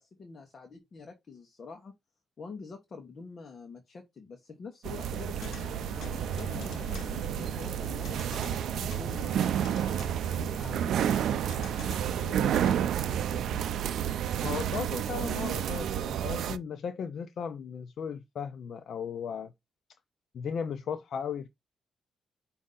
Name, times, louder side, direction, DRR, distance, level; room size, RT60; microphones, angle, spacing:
voice 1, 0.0-1.9 2.4-5.5 6.0-9.9 10.3-13.8, left 4 dB, 40° left, 1.0 m, -47 dB
sound 1, 4.8-16.6, right 9 dB, 85° right, 0.4 m, -30 dB
sound 2, 5.4-12.8, left 4 dB, 85° left, 1.1 m, -45 dB
voice 2, 14.4-19.5 20.3-21.5, left 7 dB, 60° left, 0.5 m, -36 dB
5.3 x 2.7 x 3.7 m
cardioid pair, 140°, 0 cm